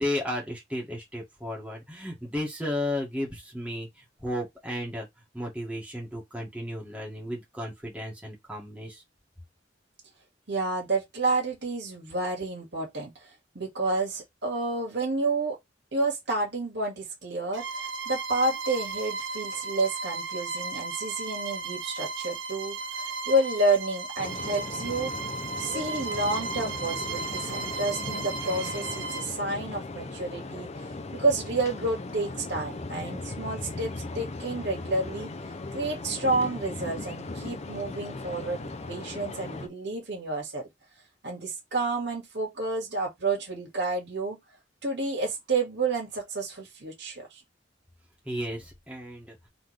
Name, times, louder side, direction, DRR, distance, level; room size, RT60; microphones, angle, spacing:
voice 1, 0.0-3.9 4.2-5.1 5.3-9.0 48.3-49.3, left 1 dB, 5° right, 1.8 m, -33 dB
voice 2, 10.5-15.6 15.9-25.2 25.6-30.7 31.1-35.3 35.7-40.7 41.2-44.4 44.8-47.4, right 2 dB, 65° right, 2.0 m, -30 dB
Bowed string instrument, 17.5-29.3, right 4 dB, 85° right, 1.1 m, -35 dB
Loctudy small harbour, 24.2-39.7, left 2 dB, 35° left, 0.6 m, -38 dB
4.0 x 3.6 x 3.3 m
head